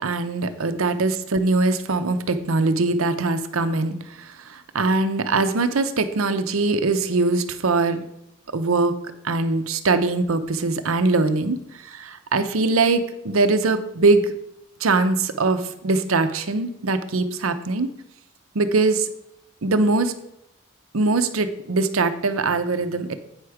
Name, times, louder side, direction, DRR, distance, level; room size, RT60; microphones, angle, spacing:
voice 1, 0.0-8.0 8.5-9.0 9.2-14.3 14.8-17.9 18.5-19.1 19.6-20.1 20.9-23.1, right 3 dB, 85° right, 9 dB, 0.7 m, -22 dB
8.9 x 5.8 x 4.9 m, 0.82 s
head